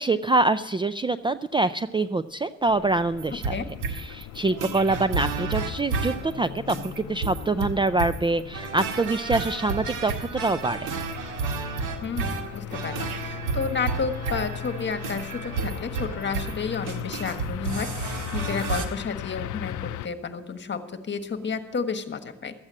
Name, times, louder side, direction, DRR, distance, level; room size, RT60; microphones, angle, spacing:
voice 1, 0.0-3.6 3.9-10.9, right 2 dB, 15° right, 12 dB, 0.4 m, -25 dB
sound 1, 2.7-20.1, left 12 dB, 75° left, 0.5 m, -39 dB
sound 2, 3.2-18.9, right 4 dB, 80° right, 1.8 m, -31 dB
voice 2, 12.0-22.5, left 5 dB, 35° left, 8 dB, 1.5 m, -31 dB
13.0 x 8.8 x 7.5 m, 0.94 s
cardioid pair, 90°, 30 cm